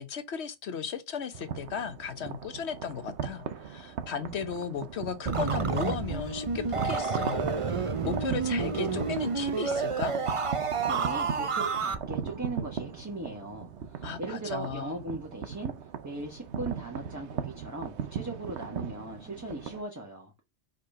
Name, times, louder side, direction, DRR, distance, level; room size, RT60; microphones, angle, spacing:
voice 1, 0.0-10.1 14.0-15.0, left 7 dB, 80° left, 1.2 m, -36 dB
sound 1, 1.3-19.8, right 7 dB, 90° right, 1.1 m, -38 dB
sound 2, 5.3-12.0, right 5 dB, 35° right, 0.6 m, -30 dB
voice 2, 10.9-15.7 16.0-20.3, right 2 dB, 15° right, 1.2 m, -38 dB
5.2 x 4.1 x 5.3 m
omnidirectional pair, 1.1 m